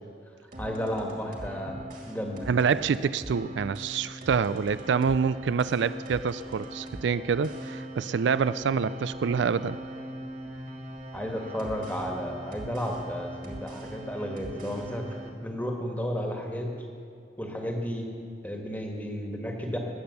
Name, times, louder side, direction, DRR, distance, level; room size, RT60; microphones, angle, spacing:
sound 1, 0.5-15.3, right 1 dB, 45° right, 2.2 m, -41 dB
voice 1, 0.6-2.5 11.1-15.0 15.4-16.7 17.4-18.1 18.4-19.8, equal, 10° left, 1 dB, 1.6 m, -33 dB
voice 2, 2.5-9.8, right 6 dB, 70° right, 15 dB, 0.4 m, -26 dB
20.0 x 8.7 x 6.9 m, 2.4 s
head